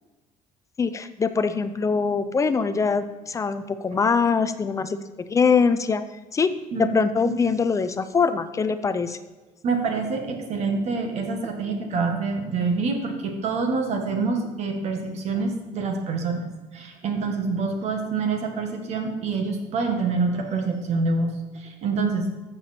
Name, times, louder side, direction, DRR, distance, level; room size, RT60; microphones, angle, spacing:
voice 1, 0.8-6.5 6.8-9.2, left 5 dB, 20° left, 11 dB, 0.5 m, -23 dB
voice 2, 9.6-16.5 16.7-22.3, right 4 dB, 45° right, 4 dB, 1.7 m, -26 dB
14.0 x 7.0 x 4.3 m, 1.2 s
cardioid pair, 145°, 15 cm